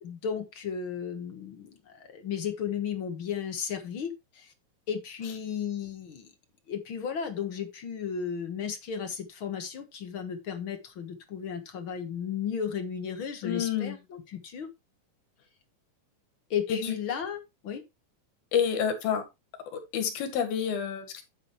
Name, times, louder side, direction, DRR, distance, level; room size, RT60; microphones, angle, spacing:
voice 1, 0.0-4.5 4.9-6.3 6.7-14.7 16.5-17.8, left 7 dB, 55° left, 7 dB, 1.5 m, -34 dB
voice 2, 13.4-14.0 16.7-16.9 18.5-19.2 19.7-21.2, left 8 dB, 80° left, 7 dB, 3.6 m, -29 dB
9.2 x 8.7 x 3.2 m, 0.23 s
omnidirectional pair, 4.2 m